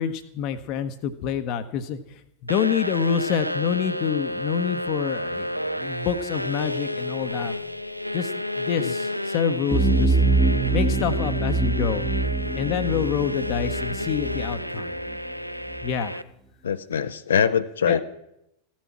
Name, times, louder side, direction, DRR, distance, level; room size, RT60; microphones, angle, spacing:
voice 1, 0.0-7.5 8.1-8.3 8.6-10.2 10.7-12.1 12.5-14.9 15.8-16.2 17.9-18.0, left 8 dB, 40° left, 10 dB, 0.9 m, -27 dB
sound 1, 2.5-16.2, left 1 dB, 90° right, 0.4 m, -31 dB
sound 2, 9.7-15.3 15.7-15.8, right 3 dB, 10° right, 1.4 m, -24 dB
voice 2, 16.6-18.0, left 7 dB, 65° left, 11 dB, 0.6 m, -23 dB
15.0 x 7.3 x 8.4 m, 0.82 s
figure-of-eight pair, 90°, 0 cm